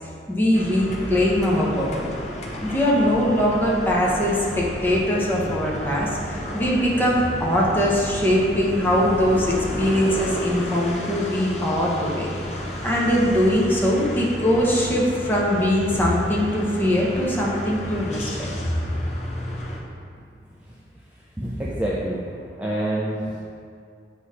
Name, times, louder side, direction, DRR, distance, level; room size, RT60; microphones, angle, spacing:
voice 1, 0.3-2.1 2.6-12.3 12.8-18.7, equal, 10° left, -4 dB, 0.9 m, -21 dB
sound 1, 0.5-19.8, equal, 40° left, 0.7 m, -33 dB
voice 2, 21.4-22.2 22.6-23.4, right 1 dB, 10° right, -6 dB, 0.5 m, -26 dB
7.9 x 2.9 x 4.8 m, 2.3 s
head